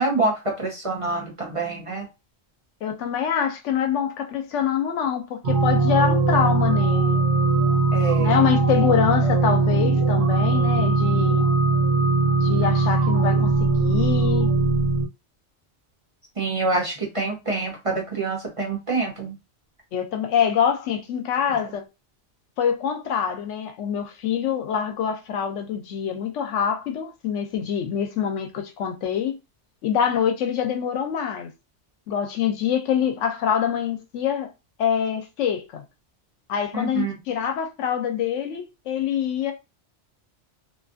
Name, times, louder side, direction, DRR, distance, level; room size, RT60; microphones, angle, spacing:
voice 1, 0.0-2.1 7.9-8.3 16.4-19.3 36.7-37.1, right 3 dB, 35° right, 0.6 m, -26 dB
voice 2, 2.8-7.2 8.2-11.5 12.4-14.5 19.9-21.8 22.6-29.3 29.8-31.5 32.1-34.5 34.8-35.8 36.5-39.5, left 8 dB, 90° left, 0.9 m, -25 dB
sound 1, 5.4-15.1, right 3 dB, 85° right, 1.1 m, -20 dB
2.6 x 2.3 x 2.5 m
omnidirectional pair, 1.2 m